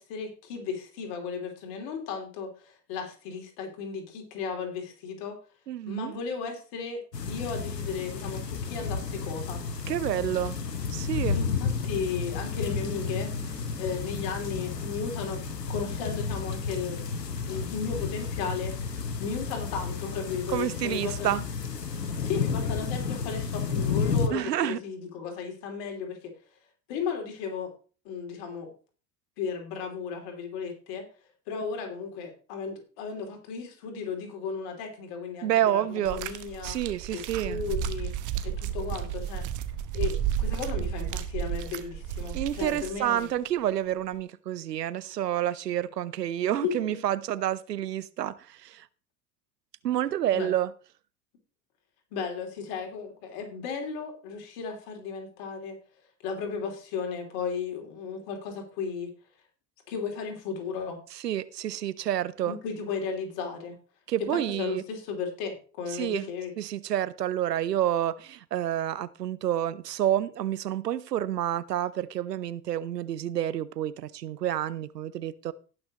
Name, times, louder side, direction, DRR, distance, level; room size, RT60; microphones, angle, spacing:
voice 1, 0.0-5.4 5.9-9.6 11.3-13.3 13.8-15.4 15.7-17.1 17.5-21.4 22.2-26.2 26.9-27.7 28.0-28.7 29.4-31.0 31.5-36.8 37.1-38.1 38.4-39.5 39.9-43.3 46.5-47.0 50.3-50.5 52.1-55.8 56.2-59.1 59.9-61.0 62.4-63.8 64.3-66.5, left 5 dB, 60° left, 3.0 m, -35 dB
voice 2, 5.7-6.1 9.9-10.6 10.9-11.4 20.5-21.4 24.3-24.8 35.4-36.2 36.6-37.6 42.3-48.9 49.8-50.7 61.1-62.6 64.1-64.8 65.9-66.3 66.6-75.5, right 11 dB, 85° right, 0.7 m, -29 dB
sound 1, 7.1-24.3, left 5 dB, 85° left, 1.1 m, -32 dB
sound 2, 12.6-22.4, left 1 dB, ahead, 1.2 m, -49 dB
sound 3, 36.1-43.3 44.1-44.2, right 9 dB, 40° right, 1.0 m, -32 dB
18.0 x 6.1 x 3.0 m
figure-of-eight pair, 75°, 47 cm